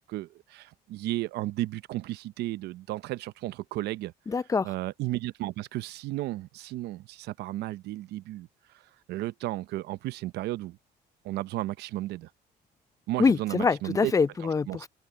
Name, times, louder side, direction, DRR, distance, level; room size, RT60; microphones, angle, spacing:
voice 1, 0.0-4.1 4.6-8.5 9.1-10.8 11.2-12.3 13.1-14.1 14.7-14.9, right 16 dB, 80° right, 0.7 m, -33 dB
voice 2, 4.3-4.7 13.2-14.9, left 4 dB, 20° left, 0.5 m, -25 dB
cardioid pair, 110°, 17 cm